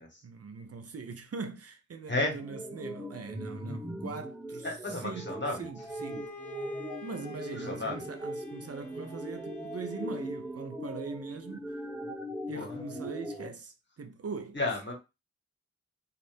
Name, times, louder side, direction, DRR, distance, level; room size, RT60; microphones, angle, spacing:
voice 1, 0.2-6.3 7.0-11.8 12.5-14.6, right 4 dB, 55° right, 0.6 m, -42 dB
sound 1, 2.4-13.5, equal, 5° right, 1.0 m, -40 dB
voice 2, 4.6-5.7 7.7-8.0 12.5-12.8 14.5-14.9, left 2 dB, 40° left, 1.5 m, -32 dB
Bowed string instrument, 5.8-10.6, left 5 dB, 80° left, 0.7 m, -49 dB
2.6 x 2.5 x 3.4 m
cardioid pair, 45°, 29 cm